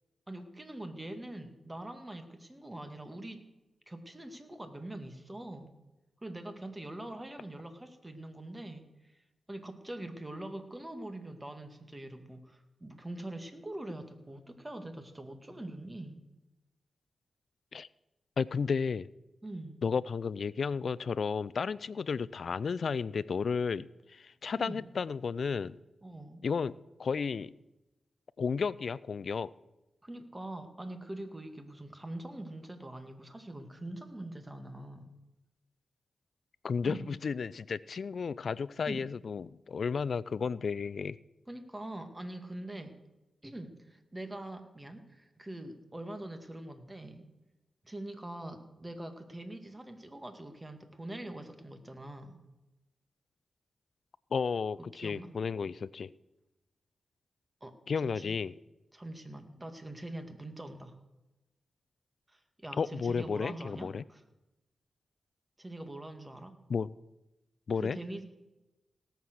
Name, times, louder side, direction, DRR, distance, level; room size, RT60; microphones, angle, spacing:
voice 1, 0.3-3.4 3.9-5.7 6.2-9.2 9.5-16.2 19.4-19.8 24.6-24.9 26.0-26.4 30.0-35.1 36.8-37.0 38.9-39.0 41.5-42.9 43.4-47.3 47.8-52.4 54.8-55.3 57.6-58.4 58.9-61.0 62.3-64.2 65.6-66.6 67.8-68.2, right 1 dB, 20° right, 7 dB, 2.1 m, -43 dB
voice 2, 18.4-19.1 19.8-25.8 26.4-26.7 27.0-27.5 28.4-29.5 36.6-41.2 54.3-56.1 57.9-58.5 62.8-64.0 66.7-66.9 67.7-68.0, left 5 dB, 65° left, 20 dB, 0.4 m, -33 dB
17.5 x 7.5 x 6.4 m, 1.0 s
supercardioid pair, 45°, 0 cm